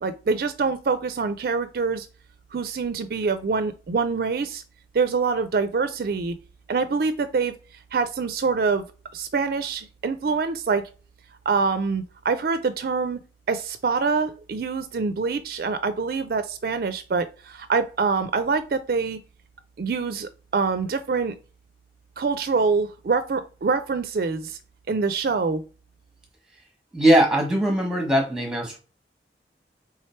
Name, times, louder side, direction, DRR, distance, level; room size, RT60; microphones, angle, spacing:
voice 1, 0.0-2.1 2.5-4.6 4.9-6.3 6.7-7.6 7.9-8.8 9.1-10.8 11.5-13.2 13.5-19.2 19.8-21.3 22.2-24.6 24.9-25.6, right 4 dB, 55° right, 0.4 m, -25 dB
voice 2, 26.9-28.8, right 1 dB, 5° right, 0.9 m, -20 dB
3.5 x 3.1 x 4.3 m
head